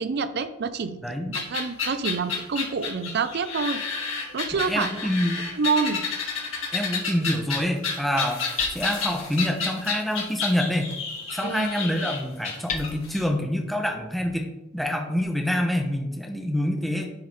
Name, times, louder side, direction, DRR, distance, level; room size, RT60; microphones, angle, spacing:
voice 1, 0.0-3.8 4.3-5.0 5.5-6.0 11.4-11.7, right 5 dB, 55° right, 12 dB, 0.5 m, -27 dB
sound 1, 1.3-13.2, left 5 dB, 70° left, 2.1 m, -30 dB
Hammer, 4.5-14.2, left 5 dB, 40° left, 0.6 m, -42 dB
voice 2, 4.5-5.4 6.7-8.4 8.7-10.9 11.3-17.1, left 1 dB, ahead, 2 dB, 0.8 m, -26 dB
10.5 x 3.7 x 3.2 m, 0.94 s
head